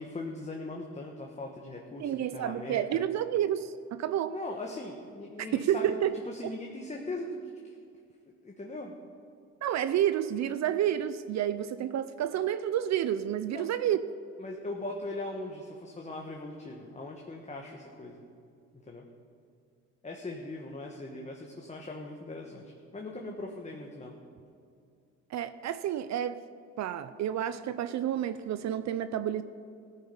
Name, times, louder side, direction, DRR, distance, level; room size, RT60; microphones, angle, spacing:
voice 1, 0.0-3.1 4.3-7.7 8.3-8.9 13.5-13.7 14.4-18.2 18.9-19.0 20.0-24.1, left 2 dB, 25° left, 0 dB, 1.3 m, -40 dB
voice 2, 2.0-4.3 5.5-6.2 6.4-6.5 9.6-14.0 25.3-26.4 26.8-29.4, right 10 dB, 65° right, 13 dB, 0.5 m, -30 dB
15.5 x 9.2 x 5.4 m, 2.3 s
cardioid pair, 90°, 30 cm